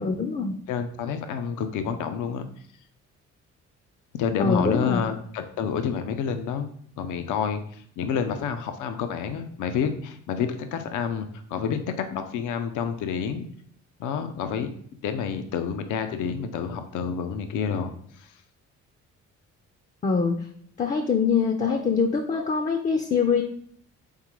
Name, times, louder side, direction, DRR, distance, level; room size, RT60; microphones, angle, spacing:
voice 1, 0.0-0.6 4.4-5.0 20.0-20.5 20.8-23.4, left 5 dB, 25° left, 4 dB, 0.4 m, -24 dB
voice 2, 0.7-2.5 4.2-6.7 7.0-13.5 14.0-14.7 15.0-18.3, left 7 dB, 80° left, 8 dB, 0.5 m, -29 dB
3.7 x 3.6 x 3.0 m, 0.62 s
cardioid pair, 90°, 30 cm